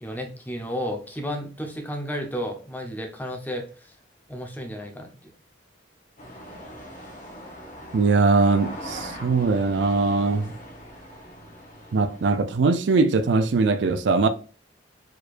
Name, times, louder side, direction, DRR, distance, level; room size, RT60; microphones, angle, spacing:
voice 1, 0.0-3.9 4.3-5.3, equal, 10° left, 0.9 m, -32 dB
Japan Tokyo Uchibori-Dori Crossing Traffic Cars Trucks, 6.2-12.4, equal, 45° left, 1.3 m, -41 dB
voice 2, 7.9-10.5 11.9-14.3, right 3 dB, 65° right, 0.4 m, -21 dB
4.6 x 4.4 x 2.5 m
head